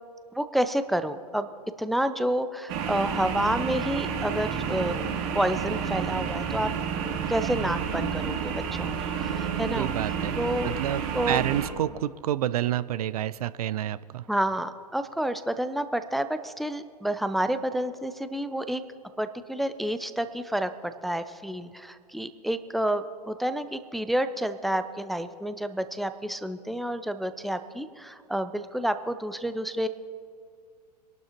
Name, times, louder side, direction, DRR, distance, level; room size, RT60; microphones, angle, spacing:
voice 1, 0.3-1.5 1.8-5.0 5.3-6.7 7.3-8.9 9.2-9.9 10.4-10.7 11.1-11.4 14.3-18.8 19.2-29.9, right 1 dB, ahead, 10 dB, 0.5 m, -29 dB
sound 1, 2.7-11.7, right 7 dB, 45° right, 2.0 m, -30 dB
voice 2, 9.7-10.4 10.6-14.2, right 12 dB, 60° right, 17 dB, 0.5 m, -29 dB
25.0 x 12.0 x 3.0 m, 2.2 s
figure-of-eight pair, 100°, 21 cm